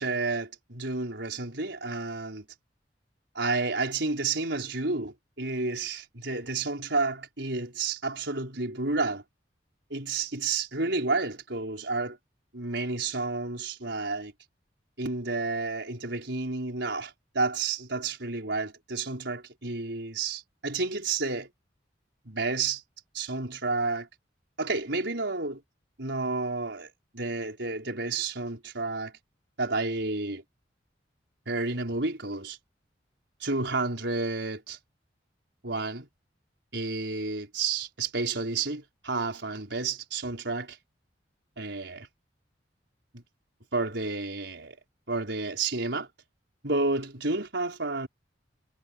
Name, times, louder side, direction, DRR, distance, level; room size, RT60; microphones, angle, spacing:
voice 1, 0.0-2.5 3.3-9.2 9.9-12.2 12.5-14.3 15.0-21.5 22.3-22.8 23.1-24.1 24.6-25.6 26.0-29.1 29.6-30.4 31.5-32.6 33.4-34.8 35.6-36.1 36.7-40.8 41.6-42.1 43.1-43.2 43.7-44.8 45.1-46.1 46.6-48.1, right 3 dB, 70° right, 5.6 m, -31 dB
head